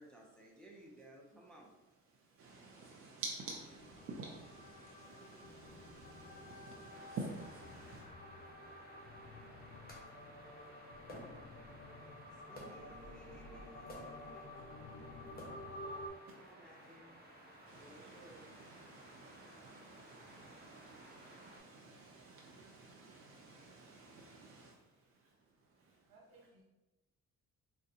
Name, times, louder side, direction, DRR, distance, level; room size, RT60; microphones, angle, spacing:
voice 1, 0.0-1.7 12.3-14.7 16.2-17.2 17.7-18.5, right 1 dB, 5° left, -3 dB, 0.6 m, -58 dB
voice 2, 2.1-8.1 16.3-16.5 17.4-26.1, right 3 dB, 50° right, -2 dB, 0.5 m, -50 dB
sound 1, 3.2-16.1, left 1 dB, 50° left, 0.6 m, -52 dB
sound 2, 6.9-21.6, right 1 dB, 30° right, 1.0 m, -58 dB
sound 3, 9.9-10.1 11.1-11.6 12.6-12.9 13.9-14.3 15.3-15.8, equal, 30° left, 1.0 m, -52 dB
voice 3, 25.6-26.6, right 2 dB, 85° right, -2 dB, 1.1 m, -65 dB
3.7 x 2.2 x 2.7 m, 1.0 s
cardioid pair, 90°, 30 cm